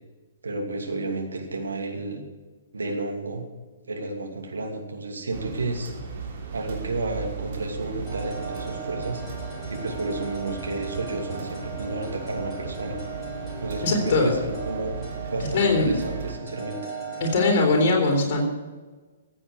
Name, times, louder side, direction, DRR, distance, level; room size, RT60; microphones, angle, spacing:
voice 1, 0.4-2.2 2.7-3.4 3.9-5.9 6.5-9.2 9.7-13.0 13.6-15.0 15.3-16.8, right 2 dB, 70° right, 2 dB, 2.6 m, -31 dB
sound 1, 5.3-16.4, right 5 dB, 45° right, 3.3 m, -37 dB
sound 2, 8.1-17.7, right 5 dB, 10° left, 4.5 m, -38 dB
voice 2, 13.8-14.3 15.5-16.0 17.2-18.4, left 3 dB, 40° left, 0 dB, 3.7 m, -21 dB
15.5 x 8.5 x 6.4 m, 1.3 s
figure-of-eight pair, 120°, 0 cm